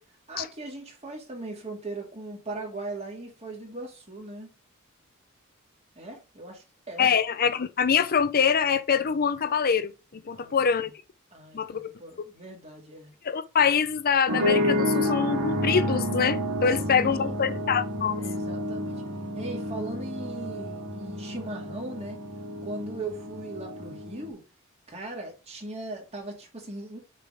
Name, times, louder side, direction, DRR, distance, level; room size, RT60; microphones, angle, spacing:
voice 1, 0.3-4.5 6.0-7.1 10.3-10.6 11.3-13.1 16.9-17.6 18.2-19.0 19.4-22.2 22.6-24.4 24.9-27.0, right 2 dB, 30° right, 2.1 m, -39 dB
voice 2, 7.0-10.9 11.5-11.9 13.2-18.2, left 6 dB, 45° left, 0.5 m, -24 dB
sound 1, 14.3-24.3, left 1 dB, 85° right, 2.0 m, -30 dB
6.7 x 3.8 x 4.9 m
head